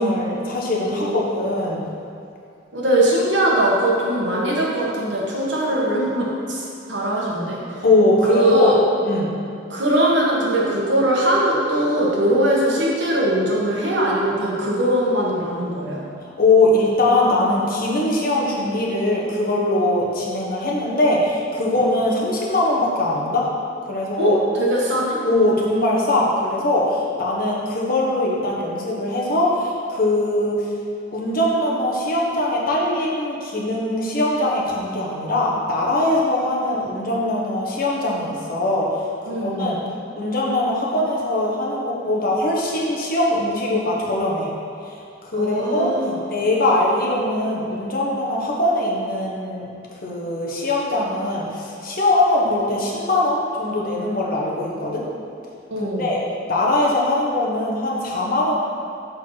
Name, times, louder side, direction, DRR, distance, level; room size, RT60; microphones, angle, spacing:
voice 1, 0.0-1.8 7.8-8.7 9.0-9.3 16.4-23.5 23.8-24.4 25.2-30.7 31.1-39.8 40.2-44.5 44.8-45.9 46.3-49.7 50.0-55.0 55.8-56.2 56.5-58.6, left 1 dB, 50° left, -3 dB, 1.3 m, -21 dB
voice 2, 0.9-1.2 2.7-7.6 8.3-8.8 9.7-16.0 24.2-25.2 39.3-39.8 45.3-46.2 55.7-56.1, right 1 dB, 70° right, -4 dB, 1.6 m, -21 dB
6.5 x 5.5 x 5.8 m, 2.6 s
head